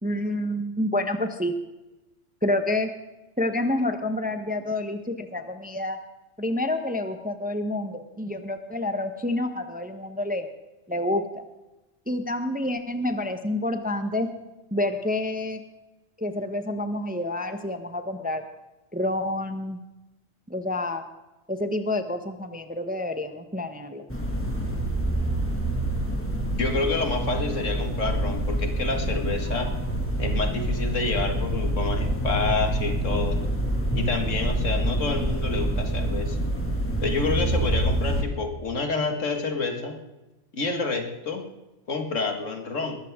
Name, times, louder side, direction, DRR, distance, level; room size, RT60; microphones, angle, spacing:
voice 1, 0.0-1.5 2.4-2.9 3.4-6.0 6.4-10.5 10.9-11.5 12.1-14.3 14.7-15.6 16.2-18.4 18.9-19.8 20.5-21.0 21.5-24.0, left 1 dB, 10° right, 7 dB, 0.9 m, -28 dB
sound 1, 24.1-38.2, right 1 dB, 10° left, 2.0 m, -26 dB
voice 2, 26.6-29.7 30.2-33.4 33.9-36.4 37.0-40.0 40.5-41.4 41.9-43.0, left 4 dB, 75° left, 4 dB, 2.3 m, -28 dB
20.0 x 14.0 x 3.7 m, 1.0 s
omnidirectional pair, 1.3 m